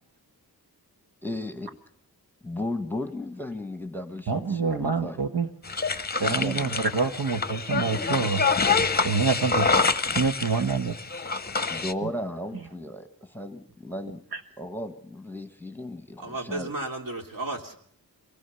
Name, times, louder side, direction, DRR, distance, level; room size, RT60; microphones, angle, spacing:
voice 1, 1.2-1.8 2.4-5.2 6.2-6.7 11.7-14.2 14.6-16.7, left 1 dB, 5° left, 9 dB, 1.3 m, -35 dB
voice 2, 4.3-5.5 6.2-8.5 9.0-9.7 10.1-10.9 12.0-12.1 14.3-14.4, right 5 dB, 80° right, 7 dB, 1.4 m, -26 dB
sound 1, 5.6-11.9, left 4 dB, 25° left, 0.8 m, -26 dB
voice 3, 16.2-17.7, right 2 dB, 60° right, 3 dB, 3.0 m, -33 dB
24.0 x 19.0 x 6.9 m, 0.64 s
wide cardioid pair, 140°, 38 cm